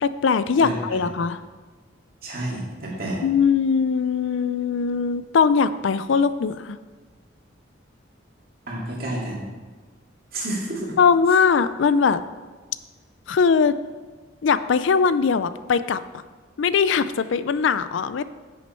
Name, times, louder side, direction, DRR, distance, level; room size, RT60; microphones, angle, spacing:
voice 1, 0.0-1.4 3.2-6.8 11.0-12.2 13.3-13.8 14.4-16.0 16.6-18.2, left 6 dB, 75° left, 14 dB, 0.4 m, -20 dB
voice 2, 0.6-1.0 2.2-3.2 8.7-9.5 10.3-10.9, right 1 dB, 50° right, -3 dB, 2.3 m, -30 dB
10.5 x 6.5 x 4.3 m, 1.4 s
head